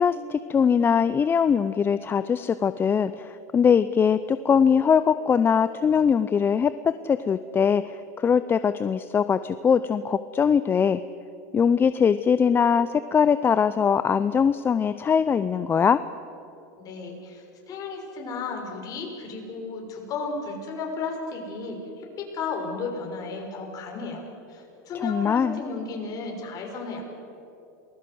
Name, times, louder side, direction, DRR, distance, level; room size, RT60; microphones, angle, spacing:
voice 1, 0.0-11.0 11.5-16.0 25.0-25.6, left 7 dB, 25° left, 13 dB, 0.6 m, -22 dB
voice 2, 16.8-24.2 24.5-27.0, left 4 dB, 40° left, 1 dB, 6.2 m, -34 dB
28.0 x 20.0 x 7.9 m, 2.8 s
hypercardioid pair, 110°, 9 cm